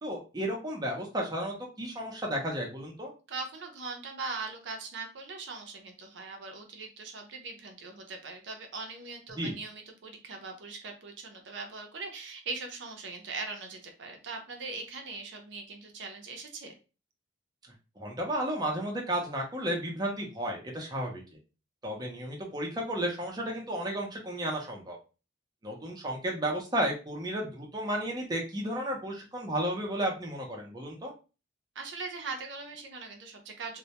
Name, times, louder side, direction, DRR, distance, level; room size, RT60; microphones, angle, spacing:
voice 1, 0.0-3.1 9.4-9.6 18.0-21.2 21.8-25.0 25.6-31.1, right 1 dB, 20° right, -1 dB, 0.5 m, -33 dB
voice 2, 3.3-16.7 31.8-33.8, right 4 dB, 70° right, 4 dB, 0.5 m, -40 dB
2.1 x 2.1 x 2.8 m, 0.32 s
head